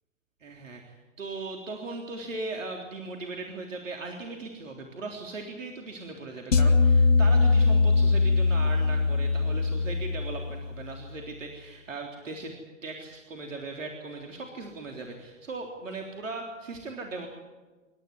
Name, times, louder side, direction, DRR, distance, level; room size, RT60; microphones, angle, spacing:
voice 1, 0.4-12.6 12.8-17.3, right 3 dB, 80° right, 2 dB, 3.8 m, -38 dB
sound 1, 6.5-10.8, left 3 dB, 80° left, 2.1 m, -22 dB
27.5 x 13.5 x 9.6 m, 1.3 s
hypercardioid pair, 115°, 38 cm